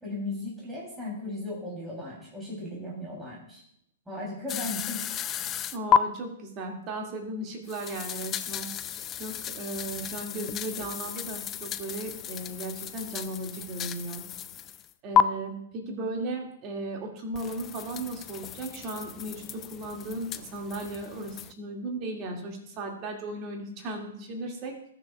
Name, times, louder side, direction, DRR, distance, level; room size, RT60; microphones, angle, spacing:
voice 1, 0.0-3.6 4.0-5.0 5.4-5.5, left 2 dB, 10° right, -6 dB, 3.4 m, -36 dB
sound 1, 4.5-6.0 7.7-14.9 15.1-15.2 17.3-21.5, left 9 dB, 25° left, 0.4 m, -32 dB
voice 2, 5.7-8.7 9.2-14.2 15.0-24.7, right 2 dB, 35° right, 1 dB, 2.4 m, -36 dB
20.0 x 6.9 x 2.4 m, 0.70 s
figure-of-eight pair, 115°, 0 cm